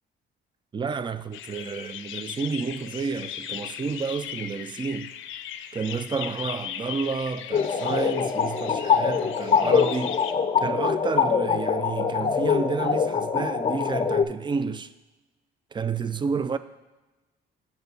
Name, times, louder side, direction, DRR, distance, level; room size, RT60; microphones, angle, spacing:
voice 1, 0.7-5.1 5.7-10.3 10.6-14.9 15.7-16.6, right 5 dB, 25° right, 0.4 m, -30 dB
sound 1, 1.3-10.3, left 10 dB, 80° left, 0.5 m, -38 dB
sound 2, 7.5-14.2, left 6 dB, 30° left, 0.5 m, -24 dB
6.8 x 4.4 x 6.8 m
cardioid pair, 90°, 20 cm